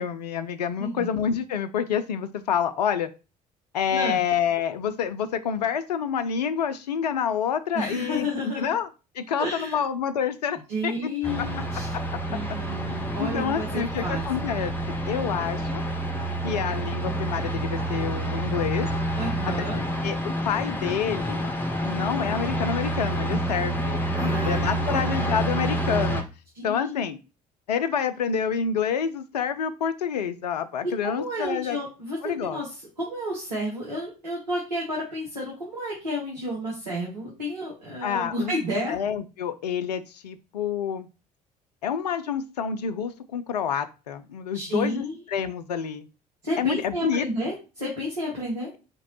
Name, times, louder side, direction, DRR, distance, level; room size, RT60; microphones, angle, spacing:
voice 1, 0.0-3.1 3.7-8.9 9.2-11.1 13.2-15.8 16.4-18.9 20.0-21.6 21.8-24.0 24.4-26.2 26.6-27.2 27.7-31.8 32.2-32.6 38.0-38.5 38.9-41.1 41.8-46.1 46.6-47.3, left 7 dB, 80° left, 11 dB, 0.4 m, -28 dB
voice 2, 7.7-8.7 9.4-9.8 10.7-11.9 12.3-14.2 19.2-19.8 24.2-25.2 26.5-27.1 30.8-38.9 44.5-45.2 46.4-48.7, equal, 85° right, -5 dB, 1.1 m, -31 dB
sound 1, 11.2-26.2, right 1 dB, 10° left, 0.9 m, -28 dB
4.5 x 2.9 x 2.9 m, 0.31 s
figure-of-eight pair, 55°, 21 cm